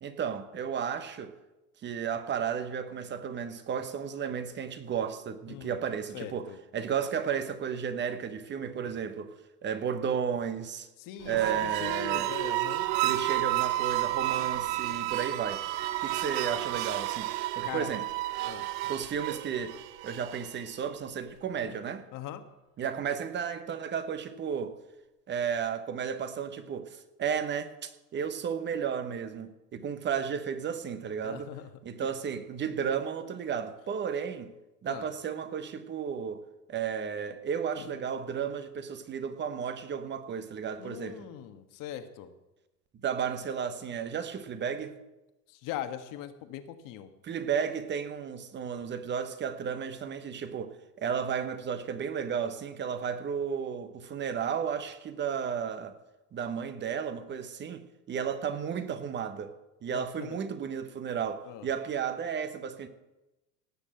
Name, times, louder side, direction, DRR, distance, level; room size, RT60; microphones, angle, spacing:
voice 1, 0.0-1.4 1.8-10.9 11.2-12.3 13.0-15.6 16.0-17.3 17.5-18.0 18.8-22.1 22.8-24.8 25.3-31.5 31.8-34.5 34.8-41.3 43.0-45.0 47.2-56.0 56.3-59.5 59.8-62.9, right 7 dB, 20° right, 1.1 m, -33 dB
voice 2, 5.5-5.8 6.1-6.6 11.0-12.9 17.6-17.9 18.4-18.7 21.6-21.8 22.1-22.4 31.2-31.7 32.0-32.1 34.8-35.1 37.8-37.9 40.8-42.3 45.5-47.1 59.9-60.3 61.4-61.7, left 11 dB, 40° left, 1.5 m, -41 dB
sound 1, 11.2-20.6, right 16 dB, 50° right, 0.9 m, -31 dB
17.5 x 6.6 x 7.7 m
supercardioid pair, 125°, 48 cm